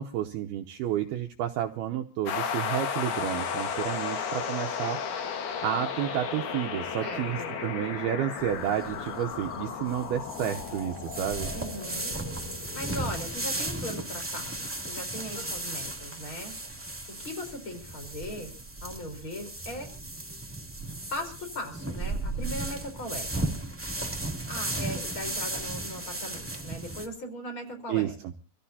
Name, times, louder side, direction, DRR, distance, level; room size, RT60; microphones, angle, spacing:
voice 1, 0.0-5.0 5.6-11.5 27.9-28.1, right 11 dB, 85° right, 5 dB, 2.1 m, -31 dB
sound 1, 2.3-13.9, left 6 dB, 60° left, 3.2 m, -34 dB
voice 2, 7.0-7.6 11.5-12.1 12.7-16.5 17.2-19.9 21.1-23.3 24.5-28.1, left 1 dB, 25° left, 4 dB, 4.3 m, -39 dB
sound 2, 8.4-27.1, right 2 dB, 10° right, 0.8 m, -35 dB
sound 3, 15.3-17.0, left 2 dB, 45° left, 4.9 m, -52 dB
26.0 x 15.5 x 2.8 m, 0.37 s
omnidirectional pair, 5.7 m